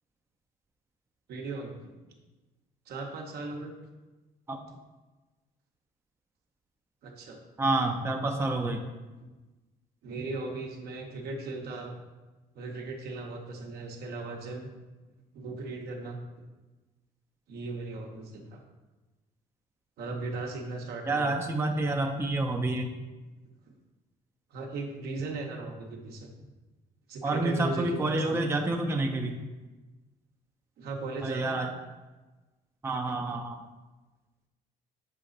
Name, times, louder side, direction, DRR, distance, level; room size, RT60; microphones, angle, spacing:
voice 1, 1.3-1.7 2.9-3.7 7.0-7.4 9.2-9.3 10.0-12.0 12.5-14.7 15.3-16.4 17.5-18.6 20.0-21.4 23.7-23.8 24.5-26.3 27.1-28.6 30.8-31.6, right 3 dB, 70° right, 2 dB, 1.1 m, -37 dB
voice 2, 7.6-8.8 21.1-22.9 27.2-29.4 31.2-31.7 32.8-33.6, right 2 dB, 15° right, 4 dB, 0.6 m, -28 dB
6.9 x 4.0 x 3.9 m, 1.2 s
cardioid pair, 110°, 17 cm